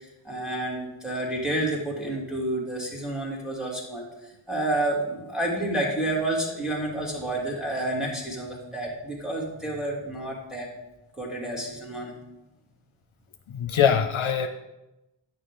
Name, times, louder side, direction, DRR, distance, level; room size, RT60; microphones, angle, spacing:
voice 1, 0.2-10.7 11.2-12.1, right 1 dB, ahead, -3 dB, 2.5 m, -29 dB
voice 2, 13.5-14.5, left 8 dB, 70° left, 7 dB, 0.7 m, -22 dB
10.0 x 6.5 x 3.7 m, 0.96 s
wide cardioid pair, 65°, 50 cm